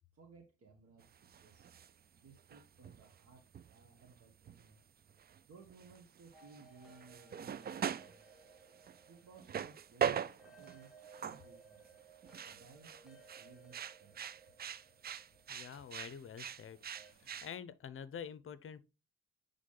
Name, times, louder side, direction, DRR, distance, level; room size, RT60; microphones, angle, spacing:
voice 1, 0.1-1.7 2.1-3.4 3.7-4.8 5.5-8.3 9.1-11.9 12.4-14.2, right 4 dB, 50° right, 1.7 m, -60 dB
sound 1, 1.0-1.9 2.3-4.7 5.1-5.4 5.7-11.5 11.8-17.6, right 8 dB, 35° right, 0.4 m, -42 dB
sound 2, 6.3-17.1, right 3 dB, ahead, 1.5 m, -61 dB
voice 2, 15.5-16.8 17.4-18.9, left 7 dB, 45° left, 0.7 m, -47 dB
8.3 x 3.7 x 3.8 m
cardioid pair, 90°, 30 cm